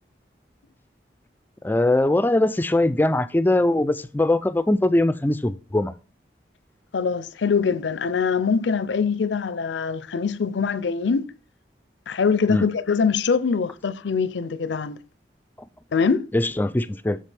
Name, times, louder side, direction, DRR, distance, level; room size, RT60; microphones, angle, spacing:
voice 1, 1.6-5.9 12.5-12.7 16.3-17.2, left 1 dB, 10° left, 0.3 m, -21 dB
voice 2, 6.9-11.3 12.1-15.0 15.9-16.3, left 5 dB, 85° left, 0.5 m, -23 dB
7.5 x 6.7 x 3.3 m
head